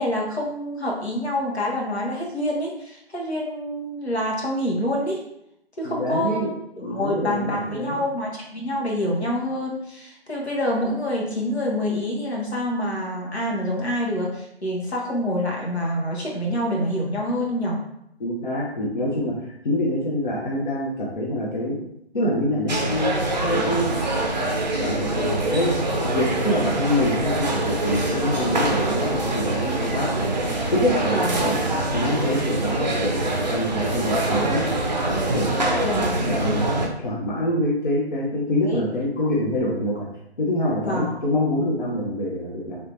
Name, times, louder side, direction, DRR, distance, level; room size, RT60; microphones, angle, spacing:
voice 1, 0.0-5.2 5.8-17.8 31.1-31.4 35.8-36.3 38.6-38.8 40.8-41.1, equal, 75° left, -2 dB, 1.1 m, -26 dB
voice 2, 5.8-6.5 6.8-8.1 18.2-21.8 22.1-23.1 23.4-24.0 24.8-25.8 26.0-30.4 30.7-34.7 35.3-35.8 36.2-40.1 40.4-42.8, left 1 dB, 45° left, -4 dB, 0.7 m, -25 dB
sound 1, 22.7-36.9, right 2 dB, 40° right, 0.5 m, -24 dB
3.3 x 2.8 x 2.6 m, 0.78 s
figure-of-eight pair, 145°, 33 cm